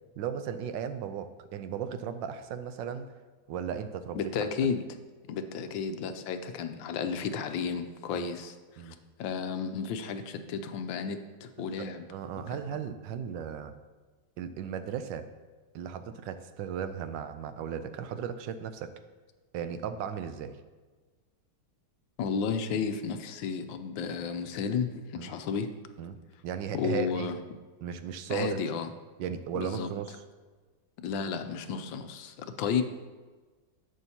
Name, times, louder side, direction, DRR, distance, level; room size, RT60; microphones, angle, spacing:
voice 1, 0.2-3.1 3.5-4.2 4.6-4.7 8.1-8.3 8.8-8.9 11.8-13.7 14.4-15.3 15.7-18.9 19.5-20.6 25.2-25.3 26.0-26.2 26.4-27.3 27.8-28.6 29.2-30.2, right 8 dB, 80° right, 10 dB, 1.3 m, -36 dB
voice 2, 4.1-4.8 5.3-12.0 12.5-12.6 22.2-25.7 26.7-27.4 28.3-28.9 29.5-29.9 31.0-32.8, left 6 dB, 85° left, 9 dB, 1.4 m, -32 dB
11.0 x 8.0 x 2.8 m, 1.3 s
omnidirectional pair, 2.0 m